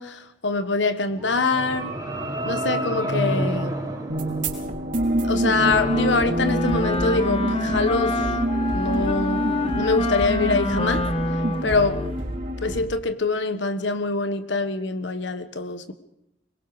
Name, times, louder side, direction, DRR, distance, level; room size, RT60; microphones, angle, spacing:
voice 1, 0.0-1.9 2.4-3.7 5.2-8.3 8.7-9.4 9.8-11.1 11.6-12.0 12.6-15.9, left 3 dB, 75° left, 9 dB, 1.4 m, -24 dB
sound 1, 1.0-5.3, right 1 dB, 20° right, 4.1 m, -29 dB
sound 2, 4.1-12.8, right 1 dB, 45° right, 5.1 m, -26 dB
Wind instrument woodwind instrument, 5.5-12.2, left 2 dB, 30° left, 1.3 m, -27 dB
24.5 x 22.5 x 5.1 m, 0.82 s
head